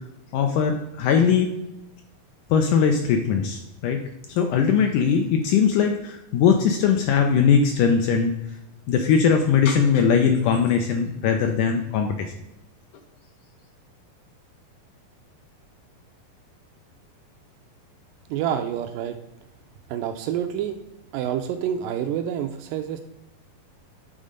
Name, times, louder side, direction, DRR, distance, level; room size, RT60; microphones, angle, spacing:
voice 1, 0.3-1.5 2.5-4.0 4.3-8.3 8.9-12.3, left 6 dB, 80° left, 4 dB, 1.9 m, -20 dB
voice 2, 18.3-19.2 19.9-20.8 21.1-23.0, right 9 dB, 80° right, 6 dB, 2.0 m, -27 dB
8.7 x 4.2 x 5.1 m, 0.88 s
omnidirectional pair, 4.2 m